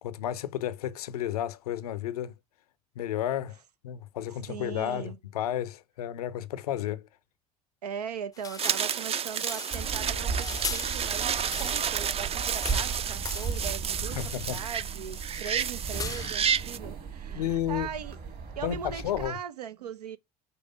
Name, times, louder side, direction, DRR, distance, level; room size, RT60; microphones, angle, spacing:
voice 1, 0.0-2.3 3.0-3.6 3.8-7.1 14.1-14.6 17.3-17.9 18.6-19.4, left 11 dB, 75° left, 0.6 m, -32 dB
voice 2, 4.5-5.2 7.8-18.2 18.6-20.2, right 8 dB, 80° right, 0.6 m, -39 dB
sound 1, 8.3-12.0 12.3-13.8 14.2-14.8 15.1-16.6, left 5 dB, 20° left, 0.5 m, -40 dB
sound 2, 8.6-16.8, right 8 dB, 30° right, 0.5 m, -31 dB
sound 3, 9.7-19.3, right 5 dB, 45° right, 2.8 m, -36 dB
5.6 x 3.2 x 5.3 m
figure-of-eight pair, 55°, 20 cm